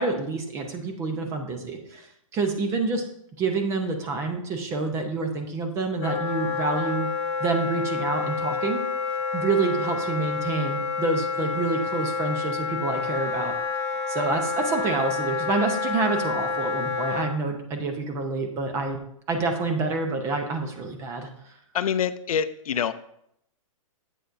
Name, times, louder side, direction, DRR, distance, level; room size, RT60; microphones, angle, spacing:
voice 1, 0.0-3.1 3.4-7.1 7.4-8.8 9.3-13.5 14.1-19.0 19.3-21.5, right 3 dB, 15° right, 5 dB, 0.6 m, -27 dB
Wind instrument woodwind instrument, 6.0-17.3, left 5 dB, 50° left, 1.1 m, -29 dB
voice 2, 21.7-22.9, left 8 dB, 85° left, 13 dB, 0.5 m, -25 dB
8.0 x 6.8 x 2.5 m, 0.73 s
hypercardioid pair, 160°, 18 cm